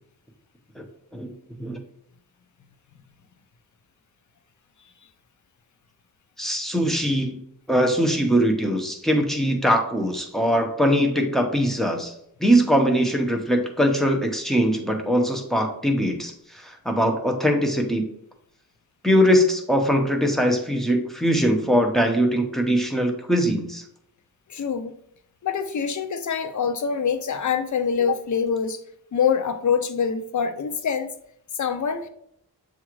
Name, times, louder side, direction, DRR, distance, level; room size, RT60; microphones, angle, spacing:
voice 1, 6.4-7.4 7.7-12.1 12.4-18.1 19.0-23.8, equal, ahead, 2 dB, 0.8 m, -21 dB
voice 2, 24.5-24.9 25.4-28.8 29.1-31.1 31.5-32.1, left 6 dB, 50° left, 9 dB, 0.5 m, -25 dB
7.0 x 2.5 x 3.0 m, 0.73 s
wide cardioid pair, 75°, 37 cm